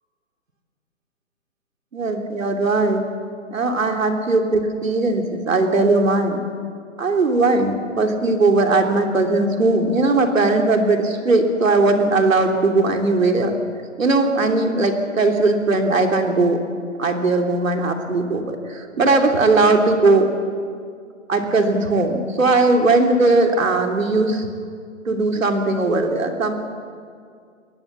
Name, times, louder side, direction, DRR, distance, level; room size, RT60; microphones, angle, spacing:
voice 1, 1.9-3.0 3.5-6.4 7.0-13.6 14.0-16.6 17.0-20.3 21.3-24.5 25.1-26.5, right 3 dB, 80° right, 3 dB, 3.2 m, -19 dB
22.0 x 18.0 x 7.3 m, 2.2 s
hypercardioid pair, 140°, 39 cm